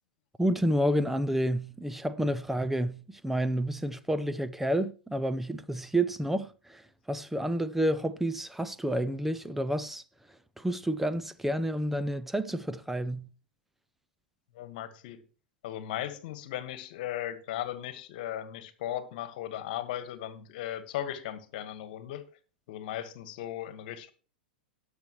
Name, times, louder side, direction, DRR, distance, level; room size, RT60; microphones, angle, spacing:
voice 1, 0.4-6.8 7.1-10.0 10.6-13.3, right 1 dB, 5° right, 0.7 m, -29 dB
voice 2, 14.5-15.2 15.6-22.2 22.7-24.1, left 12 dB, 55° left, 1.6 m, -37 dB
18.0 x 6.9 x 3.1 m
hypercardioid pair, 105°, 6 cm